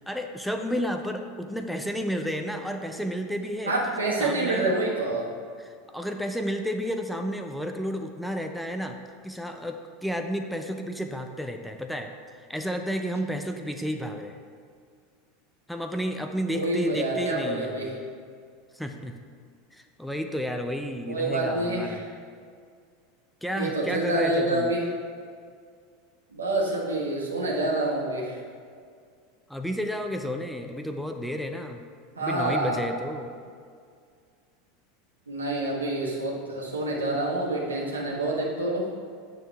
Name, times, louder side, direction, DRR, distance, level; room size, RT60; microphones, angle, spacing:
voice 1, 0.0-3.7 4.2-4.7 5.6-9.0 9.2-14.4 15.7-18.0 18.7-19.1 19.7-22.0 23.4-24.7 29.5-31.8 32.2-33.3, equal, ahead, 4 dB, 0.6 m, -31 dB
voice 2, 3.7-5.3 16.5-17.9 21.1-22.1 23.5-24.8 26.3-28.4 32.1-32.8 35.3-38.9, right 2 dB, 85° right, -3 dB, 1.4 m, -27 dB
8.7 x 6.3 x 3.5 m, 2.1 s
figure-of-eight pair, 85°, 0 cm